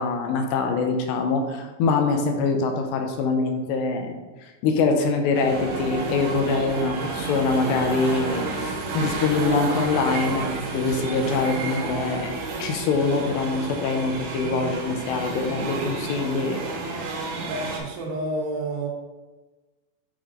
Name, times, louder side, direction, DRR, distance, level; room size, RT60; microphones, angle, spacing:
voice 1, 0.0-4.1 4.6-12.3 12.6-16.6, left 4 dB, 80° left, 4 dB, 2.7 m, -24 dB
sound 1, 5.3-17.8, right 3 dB, 65° right, 2.9 m, -31 dB
voice 2, 17.5-18.9, right 2 dB, 90° right, -1 dB, 3.6 m, -29 dB
8.0 x 6.1 x 2.5 m, 1.2 s
omnidirectional pair, 5.3 m